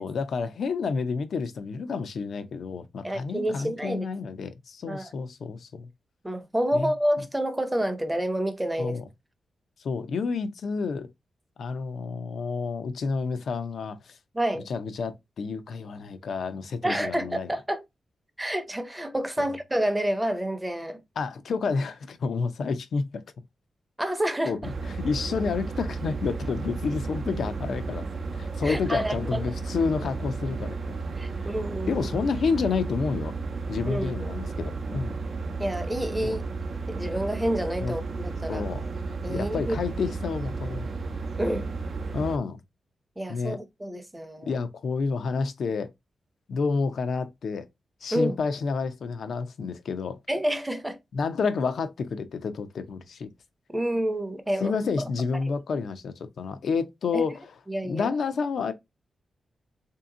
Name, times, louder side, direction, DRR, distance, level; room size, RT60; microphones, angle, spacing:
voice 1, 0.0-5.9 6.7-6.9 8.8-9.0 9.8-11.1 11.6-14.2 14.7-17.5 19.4-19.5 21.2-23.0 24.4-28.0 28.4-30.8 31.9-33.3 33.7-35.1 36.2-36.4 37.8-37.9 38.5-38.8 39.3-40.9 42.1-42.6 43.3-43.6 44.5-45.9 46.5-47.6 48.0-50.2 51.1-53.3 54.6-57.5 57.8-58.7, left 5 dB, 75° left, 0.6 m, -29 dB
voice 2, 3.0-4.1 4.9-5.1 6.2-9.0 14.3-14.7 16.8-17.8 18.4-21.0 24.0-24.7 28.6-29.4 31.2-32.1 33.9-34.4 35.6-36.4 36.9-38.7 39.2-39.8 41.4-41.7 43.2-44.5 48.1-48.4 50.3-51.0 53.7-54.7 55.0-55.1 57.1-57.2 57.7-58.1, right 1 dB, 10° right, 0.7 m, -28 dB
sound 1, 24.6-42.4, right 4 dB, 55° right, 0.6 m, -33 dB
3.5 x 2.8 x 3.7 m
wide cardioid pair, 105°, 0 cm